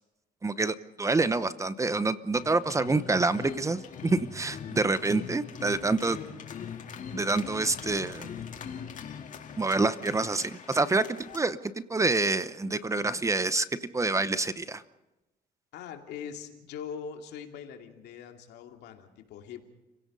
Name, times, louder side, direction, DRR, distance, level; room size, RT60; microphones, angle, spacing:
voice 1, 0.4-6.2 7.1-8.3 9.6-14.8, right 3 dB, 20° right, 14 dB, 0.8 m, -27 dB
sound 1, 2.3-11.4, left 7 dB, 50° left, 2.0 m, -42 dB
voice 2, 15.7-19.6, left 7 dB, 80° left, 4 dB, 2.7 m, -42 dB
30.0 x 17.0 x 5.5 m, 1.0 s
cardioid pair, 110°, 17 cm